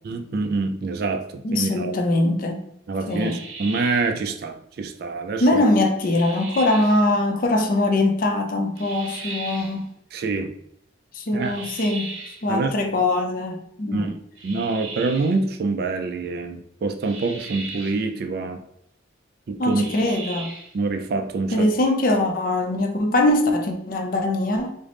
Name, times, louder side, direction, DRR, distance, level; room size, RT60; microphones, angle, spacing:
voice 1, 0.0-1.9 2.9-5.6 10.1-10.5 11.3-11.7 12.5-12.7 13.9-14.1 14.4-18.6 19.5-19.8 20.7-21.7, right 3 dB, 50° right, 6 dB, 0.3 m, -26 dB
voice 2, 1.4-2.7 3.1-3.4 5.4-9.9 11.1-14.1 19.6-20.5 21.5-24.8, left 1 dB, 45° left, 4 dB, 0.4 m, -22 dB
sound 1, 3.1-4.1 6.0-7.0 8.8-9.8 11.4-12.5 14.4-15.4 17.0-18.0 19.7-20.7, right 4 dB, 65° right, 0.7 m, -37 dB
3.3 x 2.0 x 3.7 m, 0.75 s
head